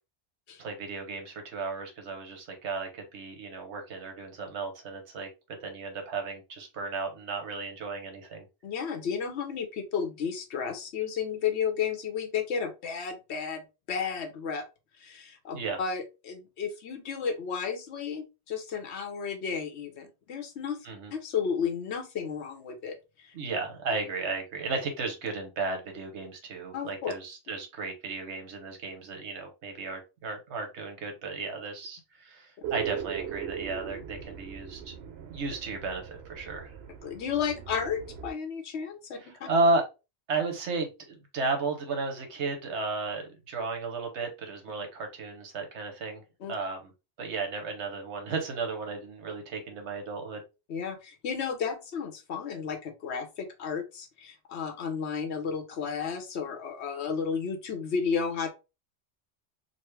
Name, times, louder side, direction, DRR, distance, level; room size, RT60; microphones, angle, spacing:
voice 1, 0.6-5.3 5.6-8.5 15.5-15.8 20.8-21.1 23.3-34.9 35.3-36.7 39.2-39.8 40.3-46.2 46.5-46.9 47.2-50.4, right 3 dB, 85° right, 4 dB, 1.2 m, -34 dB
voice 2, 8.6-14.6 15.0-20.8 21.1-23.3 26.7-27.1 32.6-32.7 37.0-39.5 46.4-46.5 50.7-58.5, left 6 dB, 75° left, 6 dB, 1.1 m, -33 dB
sound 1, 32.6-38.3, right 9 dB, 70° right, 0.8 m, -39 dB
4.1 x 2.0 x 3.1 m, 0.27 s
omnidirectional pair, 1.1 m